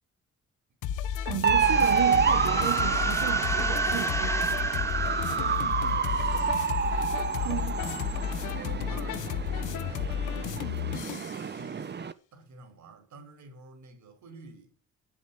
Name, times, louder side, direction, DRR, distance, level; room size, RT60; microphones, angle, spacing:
sound 1, 0.8-11.4, left 9 dB, 85° left, 1.0 m, -32 dB
voice 1, 1.2-4.7 7.4-7.8, right 11 dB, 90° right, 1.4 m, -34 dB
sound 2, 1.4-12.1, right 6 dB, 35° right, 1.0 m, -28 dB
sound 3, 1.5-7.1, left 1 dB, 10° left, 2.1 m, -37 dB
voice 2, 5.4-6.7 7.4-10.8 11.3-14.7, right 3 dB, 70° right, 5.4 m, -49 dB
9.9 x 8.1 x 8.7 m
cardioid pair, 90°, 30 cm